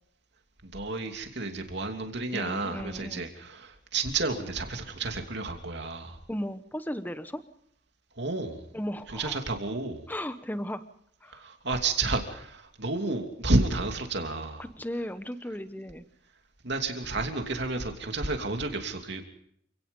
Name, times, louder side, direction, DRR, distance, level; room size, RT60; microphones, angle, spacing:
voice 1, 0.6-6.2 8.2-8.7 9.1-10.1 11.3-14.7 16.6-19.2, right 3 dB, 55° right, 4 dB, 2.9 m, -31 dB
voice 2, 2.3-3.3 6.3-7.4 8.7-9.4 10.1-10.8 11.2-11.4 14.6-16.0, equal, 10° left, 12 dB, 1.0 m, -35 dB
28.5 x 18.0 x 5.5 m, 0.69 s
head